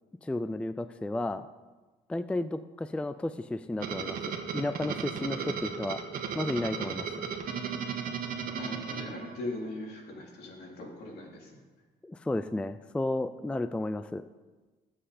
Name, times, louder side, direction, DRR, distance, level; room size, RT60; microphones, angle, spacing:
voice 1, 0.2-1.5 2.1-6.0 6.3-7.1 12.0-14.2, left 2 dB, 5° left, 12 dB, 0.4 m, -33 dB
sound 1, 3.8-9.8, right 6 dB, 60° right, 1.5 m, -35 dB
voice 2, 8.6-11.5, left 2 dB, 70° left, -2 dB, 3.8 m, -40 dB
19.5 x 7.8 x 4.3 m, 1.3 s
cardioid pair, 110°, 17 cm